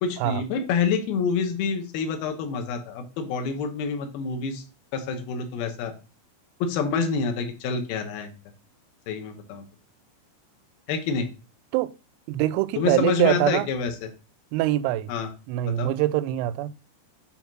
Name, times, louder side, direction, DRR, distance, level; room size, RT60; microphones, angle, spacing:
voice 1, 0.0-4.6 4.9-5.9 6.6-8.3 9.1-9.6 10.9-11.3 12.8-14.1 15.1-15.3 15.6-15.9, left 5 dB, 80° left, 2.1 m, -27 dB
voice 2, 12.3-13.7 14.5-15.1 15.5-16.9, right 15 dB, 90° right, 3.3 m, -24 dB
10.0 x 3.6 x 6.1 m
omnidirectional pair, 6.0 m